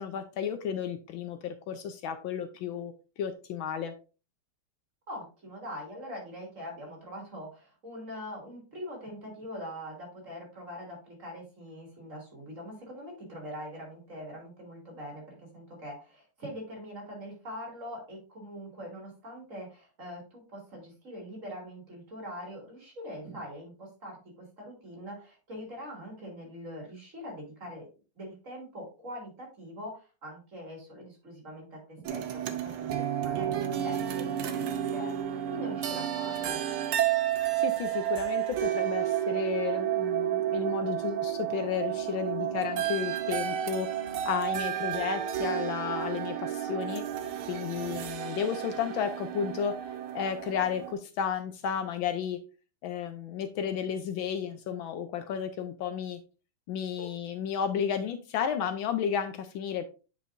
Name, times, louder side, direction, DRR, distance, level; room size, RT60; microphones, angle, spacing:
voice 1, 0.0-3.9 37.6-43.9 44.2-47.1 47.5-49.7 50.1-52.4 52.8-56.2 56.7-59.9, left 8 dB, 75° left, 8 dB, 1.3 m, -33 dB
voice 2, 5.1-27.9 28.1-36.6 57.0-57.1, equal, 35° right, -1 dB, 2.8 m, -43 dB
sound 1, 32.0-50.9, right 11 dB, 80° right, 1.7 m, -31 dB
8.6 x 5.0 x 2.5 m, 0.34 s
omnidirectional pair, 2.3 m